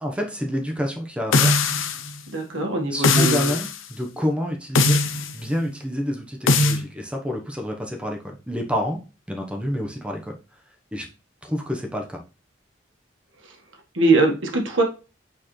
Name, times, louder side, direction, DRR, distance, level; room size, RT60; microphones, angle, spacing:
voice 1, 0.0-1.6 2.9-5.0 5.3-9.0 9.3-10.4 10.9-11.1 11.4-12.2, equal, 5° right, 1 dB, 1.1 m, -28 dB
sound 1, 1.3-2.1 3.0-3.7 4.8-5.3 6.5-6.8, left 3 dB, 80° left, 0.8 m, -19 dB
voice 2, 2.3-3.5 13.9-14.8, right 2 dB, 70° right, 2 dB, 1.7 m, -21 dB
8.3 x 4.5 x 3.3 m, 0.32 s
head